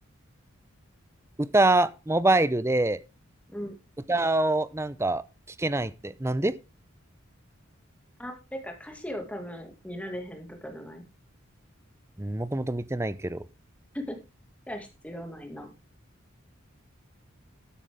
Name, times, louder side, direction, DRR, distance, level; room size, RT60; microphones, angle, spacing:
voice 1, 1.4-3.0 4.1-5.2 5.6-6.5 12.2-13.4, right 2 dB, 15° right, 0.6 m, -25 dB
voice 2, 8.2-11.0 13.9-14.2 14.7-15.7, equal, 5° left, 2.3 m, -38 dB
13.0 x 9.9 x 3.7 m
head